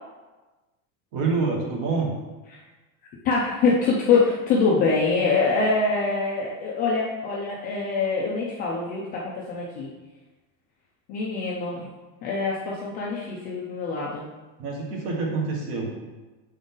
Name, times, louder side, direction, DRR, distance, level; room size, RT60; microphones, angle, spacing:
voice 1, 1.1-2.2 14.6-15.9, right 4 dB, 45° right, -1 dB, 1.4 m, -26 dB
voice 2, 3.2-9.9 11.1-11.9 12.2-14.2, left 4 dB, 20° left, -5 dB, 0.3 m, -24 dB
7.0 x 3.9 x 3.7 m, 1.2 s
cardioid pair, 180°, 40 cm